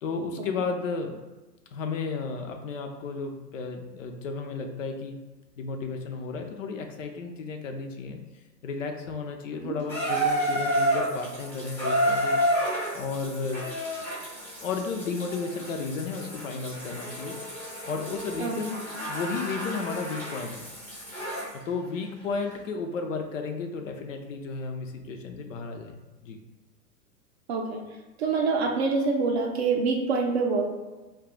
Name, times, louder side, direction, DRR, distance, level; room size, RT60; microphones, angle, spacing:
voice 1, 0.0-1.2 1.7-5.2 5.6-8.2 8.6-12.4 12.9-13.6 14.6-17.4 17.9-20.7 21.7-25.9 26.2-26.4, left 4 dB, 55° left, 4 dB, 0.5 m, -33 dB
Water tap faucet / Bathtub (filling or washing), 9.9-21.5 22.5-22.6, equal, 5° left, 0.5 m, -30 dB
voice 2, 27.5-27.8 28.2-30.7, right 4 dB, 45° right, 1 dB, 0.5 m, -25 dB
2.6 x 2.3 x 3.7 m, 1.2 s
hypercardioid pair, 115°, 49 cm